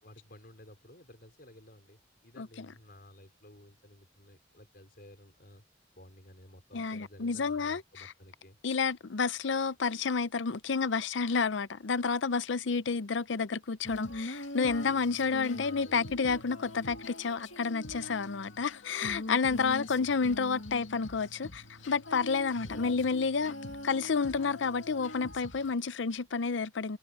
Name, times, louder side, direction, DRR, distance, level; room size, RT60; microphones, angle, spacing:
voice 1, 0.0-5.6 5.9-8.6 15.5-16.1 19.5-19.8 22.5-23.1, left 1 dB, 50° left, 4.8 m, -54 dB
voice 2, 2.4-2.7 6.7-8.1 8.6-23.5 23.8-27.0, left 5 dB, 75° left, 0.6 m, -30 dB
Female singing, 13.8-25.7, left 1 dB, 90° left, 2.3 m, -43 dB
head